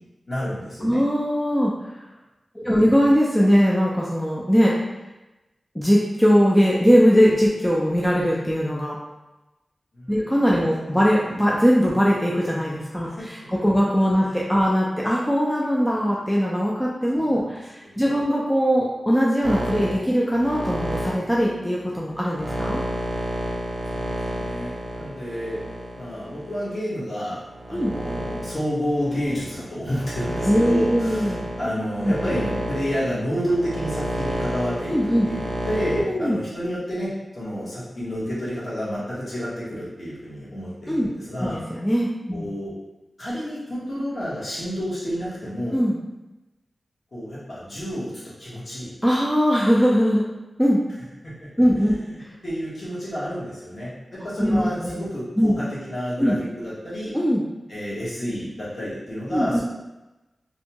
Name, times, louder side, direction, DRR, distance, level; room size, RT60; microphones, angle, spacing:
voice 1, 0.3-1.0 2.6-3.0 9.9-10.3 13.0-13.3 14.4-14.5 17.1-17.4 17.8-18.2 23.9-25.6 25.9-27.4 27.7-41.6 42.3-42.7 43.2-45.8 47.1-48.1 48.4-48.9 51.2-51.5 52.0-57.1 57.7-59.6, equal, 50° left, -9 dB, 1.1 m, -30 dB
voice 2, 0.8-1.7 2.6-4.8 5.8-9.0 10.1-22.8 27.7-27.9 30.5-31.5 32.0-32.1 34.9-35.3 35.9-36.4 40.9-41.1 41.4-42.5 45.7-46.0 49.0-50.2 50.6-50.8 51.6-52.0 54.4-55.1 55.4-55.6 56.2-56.4 57.1-57.4 59.3-59.6, equal, 5° left, -4 dB, 0.3 m, -20 dB
sound 1, 19.4-26.8 27.4-36.0, right 1 dB, 70° right, 0.6 m, -30 dB
2.6 x 2.2 x 2.8 m, 1.0 s
wide cardioid pair, 105°, 0 cm